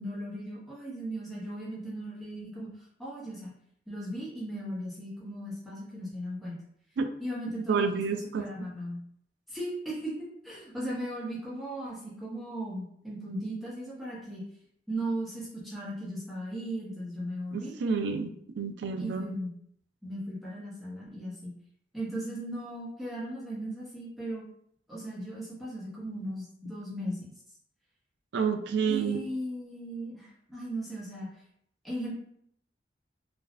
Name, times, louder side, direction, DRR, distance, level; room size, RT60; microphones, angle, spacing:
voice 1, 0.0-2.7 3.0-3.5 3.9-6.6 7.2-9.0 9.5-14.4 14.9-17.7 19.0-19.5 20.0-21.5 21.9-24.4 24.9-27.3 28.9-31.4 31.8-32.1, right 1 dB, ahead, -7 dB, 0.8 m, -37 dB
voice 2, 7.7-8.4 17.5-19.3 28.3-29.2, right 5 dB, 70° right, 7 dB, 0.3 m, -29 dB
3.4 x 2.2 x 2.4 m, 0.68 s
head